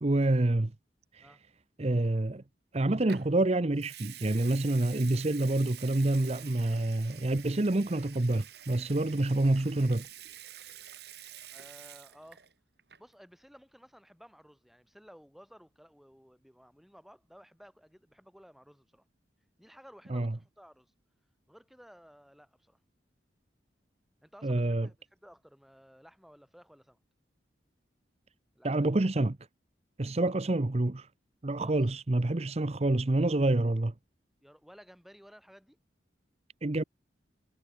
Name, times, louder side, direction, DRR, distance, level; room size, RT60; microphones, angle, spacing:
voice 1, 0.0-0.7 1.1-1.3 1.8-2.4 2.7-10.1 20.1-20.3 24.4-24.9 28.6-29.4 30.0-31.1 31.4-33.9 36.6-36.8, right 2 dB, 35° right, 0.8 m, -27 dB
Water tap faucet / Sink (filling or washing) / Liquid, 3.1-3.3 3.8-12.5 12.8-13.1, right 11 dB, 60° right, 3.2 m, -48 dB
voice 2, 11.5-12.5 13.0-19.0 19.6-20.9 21.5-22.8 24.2-27.0 28.5-28.9 30.2-30.4 31.6-31.8 32.5-32.6 34.4-35.8, equal, ahead, 5.5 m, -56 dB
head